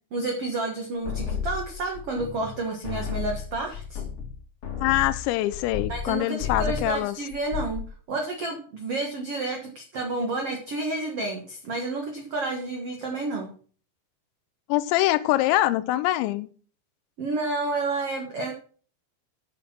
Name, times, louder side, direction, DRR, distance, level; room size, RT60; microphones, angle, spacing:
voice 1, 0.1-4.0 5.9-7.8 8.1-13.5 17.2-18.5, right 3 dB, 65° right, 1.5 m, -30 dB
sound 1, 1.0-2.6 2.8-6.1 6.4-7.0 7.3-7.9, left 7 dB, 40° left, 2.6 m, -32 dB
voice 2, 4.8-7.2 14.7-16.5, left 16 dB, 90° left, 2.9 m, -24 dB
9.2 x 7.3 x 5.9 m
omnidirectional pair, 5.1 m